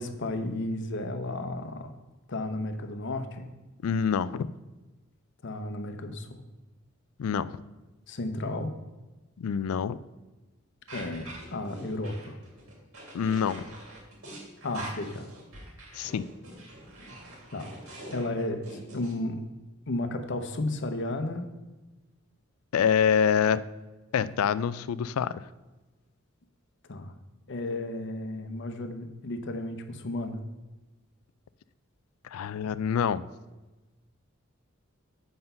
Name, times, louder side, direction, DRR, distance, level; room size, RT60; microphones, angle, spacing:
voice 1, 0.0-1.9 2.3-3.5 5.4-6.4 8.1-8.7 10.9-12.4 14.6-15.3 17.5-19.4 19.9-21.5 26.9-27.1 27.5-30.4, left 2 dB, 60° left, 8 dB, 0.8 m, -33 dB
voice 2, 3.8-4.5 7.2-7.6 9.4-10.0 13.1-13.7 15.9-16.3 22.7-23.6 24.1-25.4 32.3-33.3, left 7 dB, 85° left, 17 dB, 0.3 m, -26 dB
sound 1, 10.9-19.1, right 2 dB, 85° right, 2.7 m, -44 dB
7.9 x 5.4 x 5.5 m, 1.1 s
head